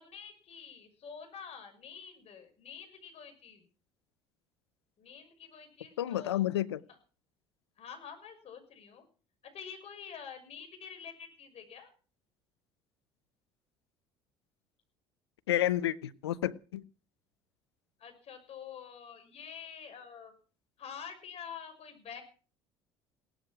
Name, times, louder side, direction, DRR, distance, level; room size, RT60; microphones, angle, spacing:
voice 1, 0.0-3.7 5.0-6.5 7.8-9.0 9.4-11.9 18.0-20.3 20.8-22.2, left 7 dB, 50° left, 6.1 m, -47 dB
voice 2, 6.0-6.8 15.5-16.8, left 12 dB, 90° left, 0.7 m, -30 dB
17.5 x 13.0 x 6.1 m
hypercardioid pair, 65°, 13 cm